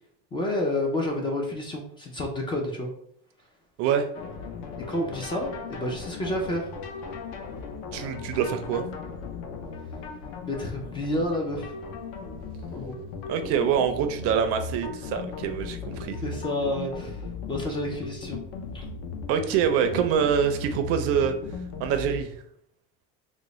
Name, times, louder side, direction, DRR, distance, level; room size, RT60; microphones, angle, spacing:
voice 1, 0.3-2.9 4.9-6.7 10.4-11.7 12.7-13.0 16.2-18.4 18.7-18.8, left 1 dB, 15° left, 1 dB, 0.3 m, -30 dB
sound 1, 4.1-22.2, left 4 dB, 60° left, 0.6 m, -37 dB
voice 2, 7.9-8.8 13.3-16.2 19.3-21.3 21.8-22.3, right 8 dB, 55° right, 7 dB, 0.4 m, -25 dB
3.8 x 2.1 x 3.0 m, 0.68 s
cardioid pair, 160°, 29 cm